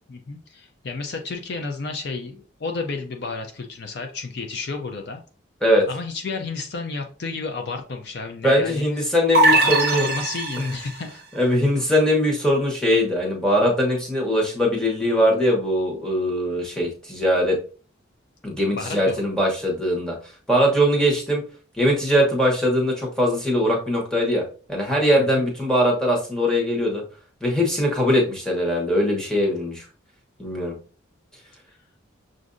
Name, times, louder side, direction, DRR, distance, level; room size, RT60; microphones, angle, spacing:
voice 1, 0.1-5.2 5.9-8.9 9.5-11.2 18.7-19.2 25.2-25.5, left 4 dB, 50° left, 5 dB, 0.4 m, -31 dB
voice 2, 8.4-10.1 11.3-17.6 18.4-20.1 20.5-21.4 21.8-24.4 24.7-27.0 27.4-29.8 30.4-30.7, equal, 5° left, -2 dB, 0.9 m, -21 dB
sound 1, 9.3-11.0, right 2 dB, 50° right, 0.5 m, -20 dB
6.1 x 2.5 x 2.5 m, 0.39 s
head